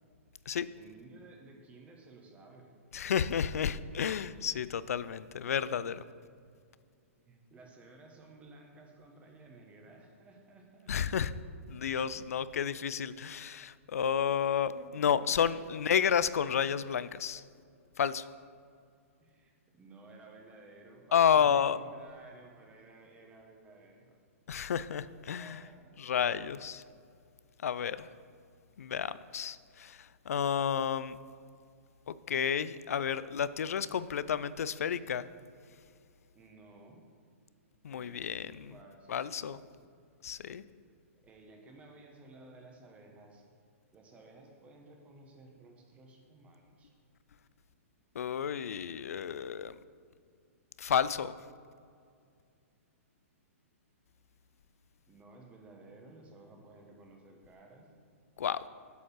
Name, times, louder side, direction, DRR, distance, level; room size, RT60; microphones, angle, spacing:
voice 1, 0.8-2.7 7.2-10.9 14.3-14.4 14.7-16.1 19.2-24.2 25.2-26.1 36.3-37.0 37.9-38.4 38.7-39.8 40.9-41.0 41.2-43.4 43.9-46.9 55.1-57.9, right 2 dB, 15° right, 2 dB, 1.4 m, -55 dB
voice 2, 2.9-6.0 10.9-11.3 11.7-17.4 18.0-18.3 21.1-21.8 24.5-25.6 26.0-26.8 27.6-28.1 28.8-31.2 32.1-35.3 37.8-38.7 39.1-39.6 40.2-40.6 48.1-49.7 50.8-51.3 58.4-58.6, left 8 dB, 80° left, 16 dB, 0.4 m, -31 dB
8.2 x 5.3 x 7.5 m, 2.3 s
hypercardioid pair, 140°, 8 cm